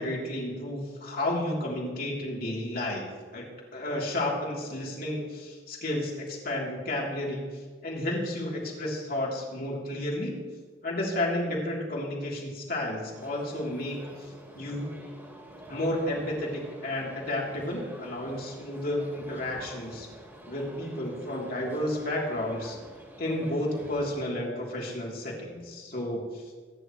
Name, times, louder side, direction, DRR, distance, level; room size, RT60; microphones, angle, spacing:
voice 1, 0.0-3.4 3.7-7.4 7.8-10.4 10.8-14.1 14.5-14.9 15.7-20.1 20.5-22.8 23.2-26.4, left 1 dB, 55° left, -3 dB, 3.2 m, -32 dB
sound 1, 13.1-24.2, right 1 dB, 15° right, 3.3 m, -47 dB
24.5 x 10.0 x 3.1 m, 1.5 s
head